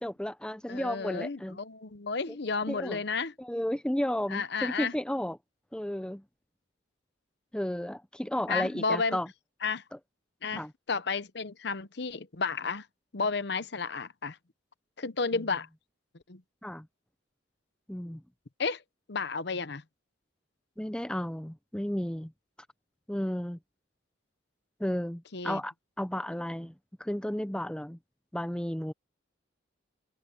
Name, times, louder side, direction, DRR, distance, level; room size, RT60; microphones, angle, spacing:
voice 1, 0.0-1.6 2.3-2.4 2.7-3.0 3.4-5.4 5.7-6.2 7.5-9.3 10.5-10.7 16.6-16.9 17.9-18.2 20.8-22.3 23.1-23.6 24.8-26.7 27.0-28.0 28.3-28.9, equal, 5° left, 0.5 m, -33 dB
voice 2, 0.7-3.3 4.3-4.9 8.5-9.2 9.6-9.8 10.4-12.8 13.1-14.4 15.0-15.7 16.3-16.4 18.6-18.8 19.1-19.8 25.3-25.6, left 4 dB, 60° left, 0.9 m, -32 dB
head